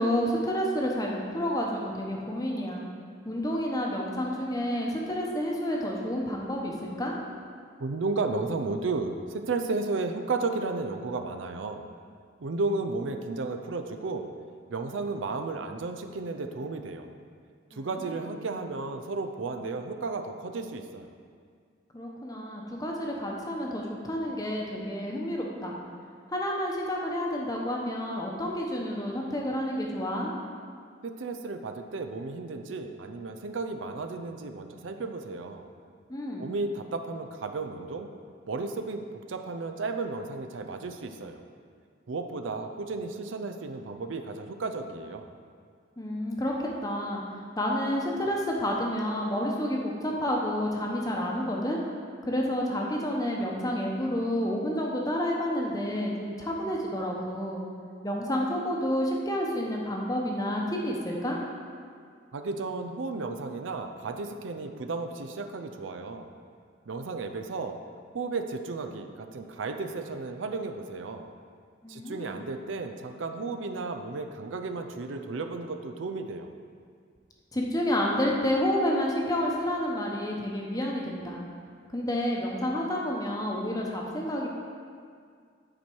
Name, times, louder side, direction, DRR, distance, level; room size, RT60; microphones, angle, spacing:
voice 1, 0.0-2.8 3.2-7.1 17.7-18.2 21.9-25.7 26.3-30.3 36.1-36.5 46.0-47.2 47.6-51.8 52.2-57.6 58.0-61.4 71.8-72.4 77.5-81.4 81.9-84.5, equal, 20° left, -1 dB, 0.9 m, -29 dB
voice 2, 7.8-11.9 12.4-14.3 14.7-17.1 17.7-21.1 31.0-35.7 36.4-38.1 38.5-41.4 42.1-45.3 62.3-66.3 66.9-67.8 68.1-71.3 71.9-76.5, right 3 dB, 80° right, 7 dB, 0.5 m, -33 dB
10.0 x 4.5 x 4.6 m, 2.1 s
head